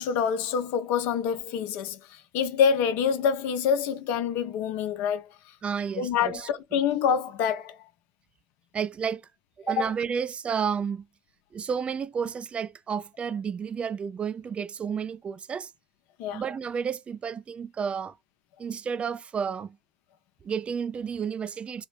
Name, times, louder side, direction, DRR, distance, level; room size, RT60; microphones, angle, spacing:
voice 1, 0.0-5.3 6.0-7.8 9.8-9.9 16.2-16.4, left 7 dB, 65° left, 0.6 m, -26 dB
voice 2, 5.6-6.8 8.7-9.3 9.6-11.1 11.5-15.7 16.3-18.2 18.6-19.8 20.4-21.9, right 7 dB, 30° right, 0.3 m, -31 dB
3.6 x 2.0 x 3.2 m
hypercardioid pair, 75°, 4 cm